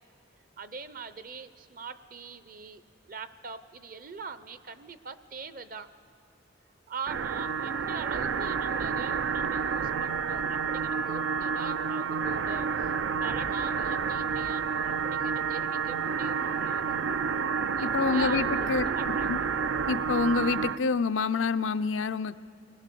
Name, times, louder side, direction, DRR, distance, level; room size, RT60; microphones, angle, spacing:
voice 1, 0.6-2.8 3.1-5.9 6.9-17.0 17.8-19.5, right 5 dB, 45° right, 13 dB, 0.7 m, -42 dB
sound 1, 7.1-20.8, right 6 dB, 85° right, 0.5 m, -29 dB
voice 2, 17.8-18.8 19.3-19.4 19.9-22.4, left 4 dB, 90° left, 12 dB, 0.5 m, -27 dB
29.0 x 19.5 x 6.9 m, 2.4 s
head